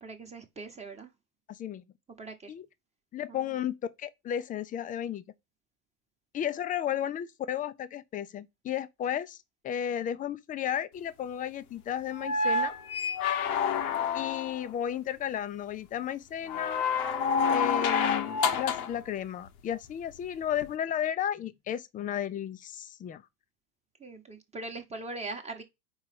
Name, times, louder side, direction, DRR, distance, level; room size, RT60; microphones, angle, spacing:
voice 1, 0.0-1.1 2.2-2.5 3.3-3.6 24.0-25.6, right 3 dB, 15° right, 1.0 m, -41 dB
voice 2, 1.5-1.8 2.5-2.6 3.1-5.2 6.3-9.4 9.6-12.7 14.1-16.9 17.5-23.2, left 10 dB, 20° left, 0.5 m, -33 dB
sound 1, 12.1-14.6 16.5-19.0 20.6-20.7, left 5 dB, 70° left, 1.1 m, -28 dB
4.8 x 4.3 x 5.9 m
hypercardioid pair, 100°, 45 cm